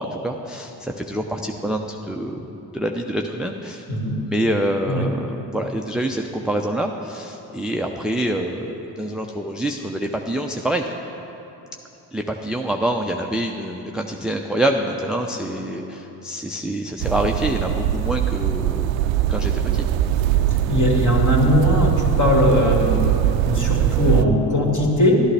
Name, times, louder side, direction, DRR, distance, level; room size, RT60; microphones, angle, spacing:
voice 1, 0.0-2.5 2.7-3.8 4.2-10.9 12.1-18.9 19.3-19.5, right 1 dB, ahead, 2 dB, 0.5 m, -26 dB
sound 1, 17.0-24.3, right 11 dB, 70° right, 0.5 m, -21 dB
voice 2, 20.7-23.0 23.4-25.2, left 1 dB, 35° left, -1 dB, 2.4 m, -19 dB
12.0 x 11.0 x 3.4 m, 3.0 s
hypercardioid pair, 55°, 50 cm